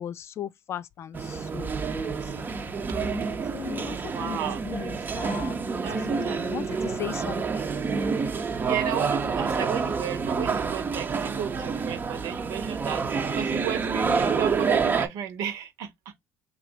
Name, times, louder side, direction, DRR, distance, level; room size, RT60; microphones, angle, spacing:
voice 1, 0.0-2.5 3.5-7.7, left 10 dB, 50° left, 0.4 m, -38 dB
sound 1, 1.1-15.1, right 5 dB, 30° right, 0.8 m, -28 dB
voice 2, 4.0-4.6 5.8-6.4 8.6-16.1, right 9 dB, 70° right, 1.0 m, -33 dB
3.1 x 2.5 x 3.9 m
hypercardioid pair, 75°, 6 cm